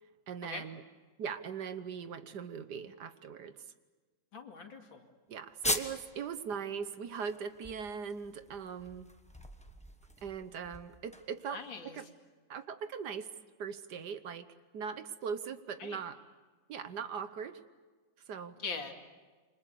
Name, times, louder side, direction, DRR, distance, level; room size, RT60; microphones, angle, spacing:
voice 1, 0.3-0.8 1.2-3.6 5.3-9.1 10.2-12.1 12.5-13.3 13.6-14.5 14.7-16.2 16.7-17.6 18.3-18.6, right 6 dB, 60° right, 11 dB, 1.5 m, -40 dB
voice 2, 4.3-5.1 11.5-12.0 15.8-16.0 18.6-18.9, left 4 dB, 80° left, 4 dB, 3.1 m, -42 dB
sound 1, 5.6-6.1 6.5-6.6 7.0-11.7, equal, 5° left, 1.0 m, -39 dB
28.0 x 25.0 x 6.9 m, 1.4 s
omnidirectional pair, 2.1 m